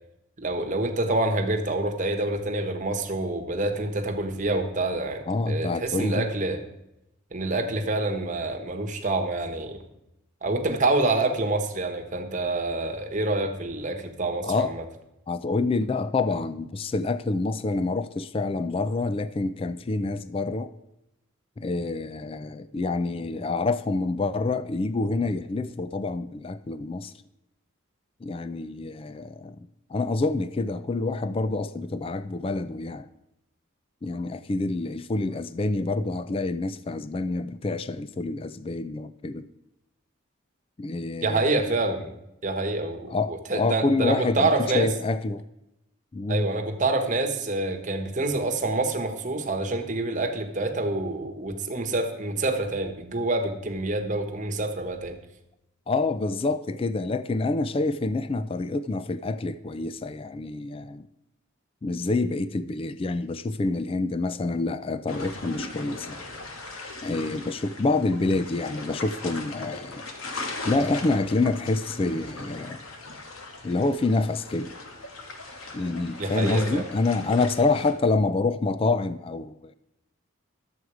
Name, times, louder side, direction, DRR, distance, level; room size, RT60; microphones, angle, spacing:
voice 1, 0.4-6.6 7.3-9.8 10.4-14.8 41.2-42.1 42.4-44.9 46.3-55.2 76.2-76.8, right 2 dB, 35° right, 1.1 m, -27 dB
voice 2, 5.3-6.3 14.4-14.7 15.3-20.7 21.6-27.1 28.2-29.6 29.9-33.1 34.0-39.5 40.8-41.6 43.1-45.4 46.1-46.5 55.9-61.1 61.8-66.2 67.0-70.0 70.6-72.8 73.6-74.7 75.7-79.7, left 3 dB, 25° left, 0.3 m, -27 dB
sound 1, 65.1-77.9, left 2 dB, 85° left, 1.4 m, -39 dB
11.5 x 7.8 x 4.8 m
head